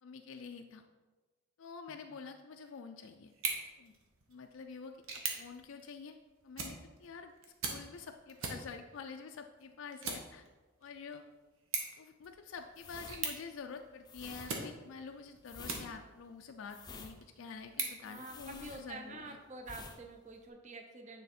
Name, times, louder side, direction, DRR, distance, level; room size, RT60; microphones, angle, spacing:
voice 1, 0.0-0.8 1.6-3.3 3.8-3.9 4.3-6.2 6.4-7.3 7.6-10.5 10.8-11.2 12.0-19.4, left 5 dB, 70° left, 5 dB, 0.4 m, -48 dB
sound 1, 3.3-16.3 16.8-18.8, right 4 dB, 80° right, 1.0 m, -44 dB
sound 2, 12.7-19.3 19.6-20.0 20.3-20.5, left 4 dB, 20° left, 0.5 m, -50 dB
voice 2, 18.0-21.2, right 2 dB, 35° right, 3 dB, 0.7 m, -48 dB
9.1 x 3.5 x 4.2 m, 1.2 s
head